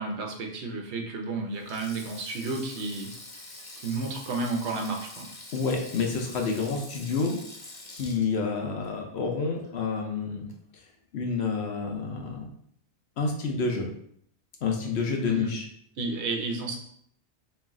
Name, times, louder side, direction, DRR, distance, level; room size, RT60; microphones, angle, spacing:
voice 1, 0.0-3.1 3.8-5.3 15.2-15.5 16.0-16.8, right 3 dB, 75° right, 1 dB, 1.0 m, -32 dB
Sink (filling or washing), 1.5-10.0 10.3-10.5 11.7-11.9, left 2 dB, 35° left, 0.4 m, -46 dB
voice 2, 5.5-7.4 7.9-10.5 11.1-12.5 13.2-13.9 14.6-15.7, left 4 dB, 70° left, 2 dB, 1.0 m, -29 dB
3.2 x 3.1 x 3.6 m, 0.67 s
omnidirectional pair, 1.2 m